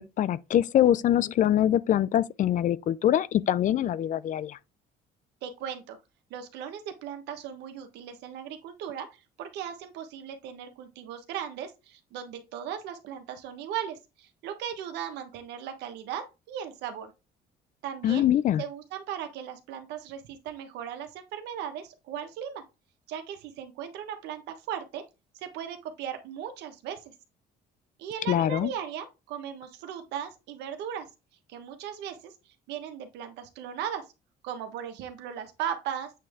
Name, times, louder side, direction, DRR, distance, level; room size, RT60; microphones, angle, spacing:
voice 1, 0.0-4.6 18.0-18.6 28.3-28.7, left 11 dB, 50° left, 0.4 m, -24 dB
voice 2, 5.4-6.0 6.3-17.1 17.8-18.3 18.6-22.6 23.1-25.0 25.3-27.1 28.0-31.1 31.5-34.1 34.4-36.1, right 9 dB, 85° right, 1.2 m, -37 dB
8.5 x 3.2 x 3.6 m
cardioid pair, 110°, 17 cm